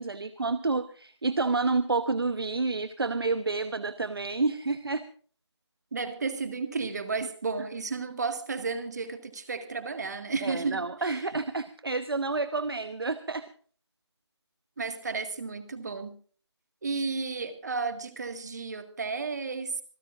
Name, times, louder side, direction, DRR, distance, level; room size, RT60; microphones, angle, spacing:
voice 1, 0.0-5.0 10.4-13.5, right 3 dB, 55° right, 12 dB, 1.0 m, -29 dB
voice 2, 5.9-11.2 14.8-16.1 16.8-19.8, right 4 dB, 35° right, 10 dB, 1.8 m, -33 dB
26.5 x 14.5 x 2.5 m, 0.44 s
figure-of-eight pair, 160°, 15 cm